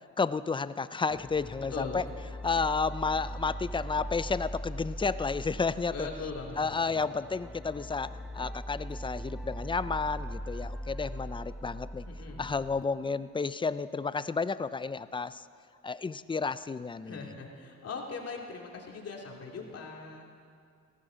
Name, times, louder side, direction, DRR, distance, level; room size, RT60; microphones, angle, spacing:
voice 1, 0.2-2.0 2.4-6.1 6.6-12.1 12.4-15.4 15.8-17.2, left 4 dB, 15° left, 15 dB, 0.4 m, -31 dB
sound 1, 1.1-12.8, equal, ahead, 0.9 m, -40 dB
voice 2, 1.7-2.0 5.9-7.0 12.1-12.6 17.0-20.2, left 4 dB, 55° left, 0 dB, 2.6 m, -40 dB
17.5 x 15.0 x 5.1 m, 2.3 s
cardioid pair, 90°, 30 cm